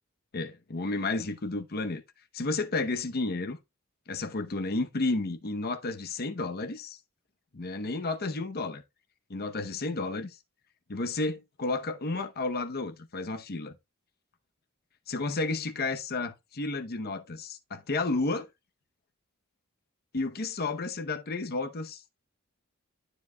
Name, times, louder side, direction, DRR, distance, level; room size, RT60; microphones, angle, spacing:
voice 1, 0.3-2.0 2.3-3.6 4.1-7.0 7.5-8.8 9.3-10.4 10.9-13.7 15.1-18.5 20.1-22.0, left 3 dB, 45° left, 0.8 m, -32 dB
12.0 x 4.9 x 2.2 m
head